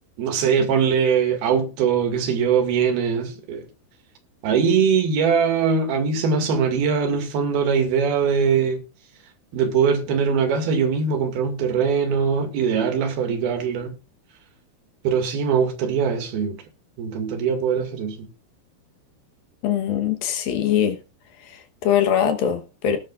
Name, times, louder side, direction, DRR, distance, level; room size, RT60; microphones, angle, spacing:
voice 1, 0.2-3.6 4.4-8.8 9.5-14.0 15.0-16.6 17.0-18.3, right 6 dB, 65° right, 3.9 m, -21 dB
voice 2, 19.6-21.0 21.4-23.0, left 9 dB, 65° left, 2.6 m, -22 dB
18.5 x 10.5 x 2.5 m
omnidirectional pair, 5.1 m